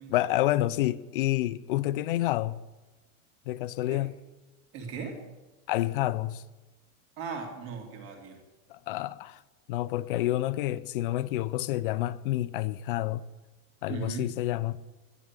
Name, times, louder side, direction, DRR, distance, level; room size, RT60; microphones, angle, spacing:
voice 1, 0.1-2.6 3.5-4.2 5.7-6.4 8.7-9.4 9.7-13.3 13.8-14.8, left 15 dB, 40° left, 0.4 m, -29 dB
voice 2, 4.7-5.2 7.2-8.4 13.9-14.3, right 5 dB, 50° right, 3.0 m, -37 dB
11.0 x 10.0 x 9.7 m
supercardioid pair, 180°, 43 cm